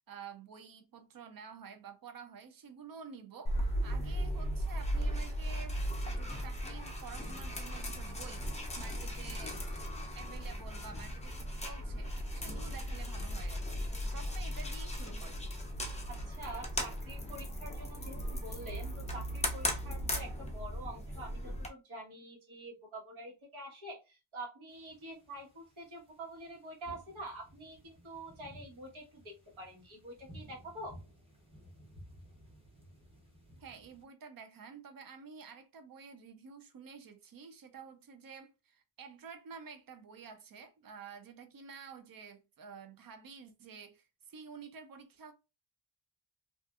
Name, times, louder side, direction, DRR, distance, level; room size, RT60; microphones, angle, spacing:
voice 1, 0.1-3.6 3.8-5.8 6.0-8.5 8.8-9.6 10.2-13.8 14.1-15.4 33.6-45.3, right 6 dB, 50° right, 0.5 m, -50 dB
sound 1, 3.5-21.7, equal, 15° left, 0.4 m, -37 dB
voice 2, 16.1-30.9, right 1 dB, 75° right, 1.3 m, -47 dB
sound 2, 24.7-34.0, equal, 10° right, 0.7 m, -56 dB
2.5 x 2.4 x 2.3 m
wide cardioid pair, 160°, 48 cm